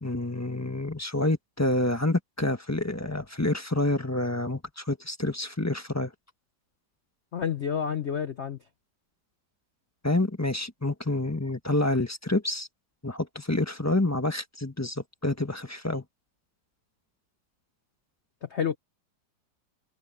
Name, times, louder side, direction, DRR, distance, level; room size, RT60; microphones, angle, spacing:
voice 1, 0.0-6.1 10.0-12.7 13.0-16.0, left 2 dB, 10° left, 1.1 m, -28 dB
voice 2, 7.3-8.6 18.4-18.8, left 7 dB, 50° left, 0.8 m, -29 dB
omnidirectional pair, 2.0 m